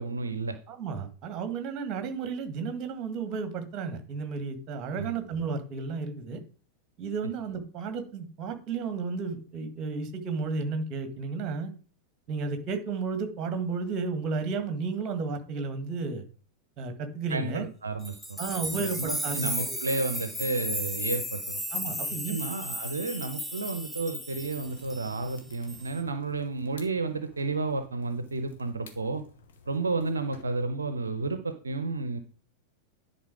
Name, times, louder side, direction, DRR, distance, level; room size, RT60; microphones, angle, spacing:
voice 1, 0.0-0.6 5.0-5.2 17.3-18.4 18.7-21.6 22.3-29.2 29.7-32.2, right 3 dB, 75° right, 10 dB, 0.6 m, -31 dB
voice 2, 0.7-6.4 7.0-11.7 12.3-16.2 16.8-17.7 18.4-19.9 21.7-22.4, right 4 dB, 35° right, 8 dB, 1.6 m, -33 dB
sound 1, 18.0-25.4 25.7-26.0, left 1 dB, 5° left, 1.0 m, -35 dB
sound 2, 24.5-30.4, left 4 dB, 60° left, 1.4 m, -53 dB
10.5 x 4.3 x 4.8 m, 0.39 s
figure-of-eight pair, 90°, 0 cm